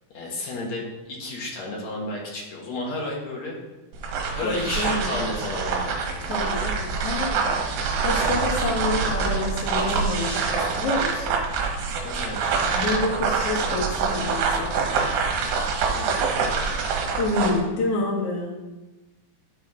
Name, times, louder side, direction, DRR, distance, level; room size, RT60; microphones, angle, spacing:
voice 1, 0.1-3.6 4.3-6.2 12.0-12.9 15.9-16.4, left 2 dB, 60° left, -3 dB, 1.9 m, -32 dB
sound 1, 3.9-17.6, right 5 dB, 75° right, 3.1 m, -25 dB
voice 2, 4.4-5.1 6.2-7.6 8.0-11.4 12.7-14.8 17.2-18.6, left 2 dB, 85° left, -3 dB, 1.3 m, -28 dB
12.0 x 4.5 x 3.6 m, 1.1 s
omnidirectional pair, 5.0 m